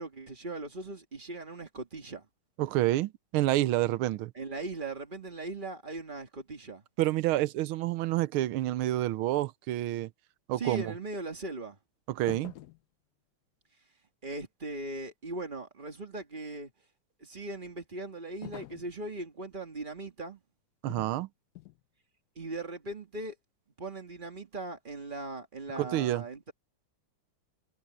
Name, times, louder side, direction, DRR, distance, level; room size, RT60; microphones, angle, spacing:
voice 1, 0.0-2.3 4.4-6.8 10.6-11.8 14.2-16.7 17.2-20.4 22.4-23.4 23.8-26.5, right 2 dB, 25° right, 2.1 m, -39 dB
voice 2, 2.6-4.3 7.0-10.1 10.5-10.9 12.1-12.5 20.8-21.3 25.8-26.2, right 15 dB, 80° right, 1.5 m, -28 dB
sound 1, 12.3-12.8 18.4-18.9 20.9-21.2 21.5-21.8, left 15 dB, 80° left, 0.9 m, -46 dB
omnidirectional pair, 2.4 m